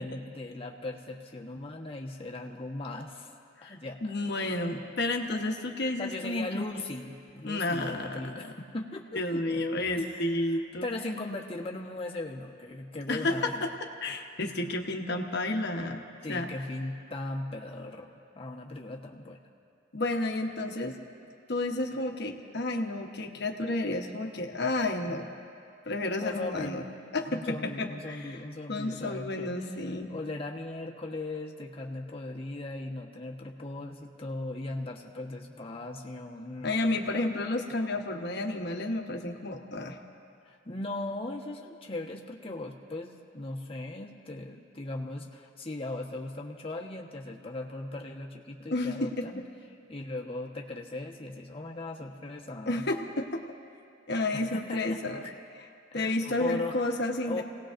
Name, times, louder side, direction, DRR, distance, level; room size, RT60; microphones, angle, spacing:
voice 1, 0.0-3.3 3.6-4.1 6.0-13.6 16.2-19.4 26.2-26.8 27.3-36.9 40.4-49.4 49.9-52.9 54.3-55.0 55.9-56.9 57.2-57.4, left 2 dB, 30° left, 0 dB, 1.2 m, -38 dB
voice 2, 3.6-6.7 7.4-8.5 9.1-10.9 13.1-13.7 14.0-16.0 16.3-16.5 19.9-21.0 21.5-25.3 25.9-26.9 27.1-28.2 28.7-30.1 36.6-40.0 48.7-49.3 52.7-53.4 54.1-55.2 55.9-57.4, left 2 dB, 60° left, 3 dB, 1.1 m, -31 dB
29.5 x 18.0 x 2.6 m, 2.4 s
head